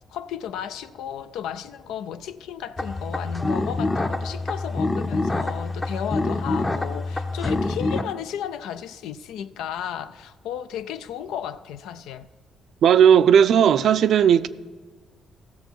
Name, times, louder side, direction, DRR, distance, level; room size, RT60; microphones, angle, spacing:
voice 1, 0.1-12.3, left 9 dB, 90° left, 0.4 m, -34 dB
sound 1, 2.8-8.0, left 2 dB, 25° left, 0.7 m, -26 dB
voice 2, 12.8-14.5, right 8 dB, 70° right, 0.4 m, -15 dB
15.0 x 6.9 x 4.5 m
cardioid pair, 90°, 0 cm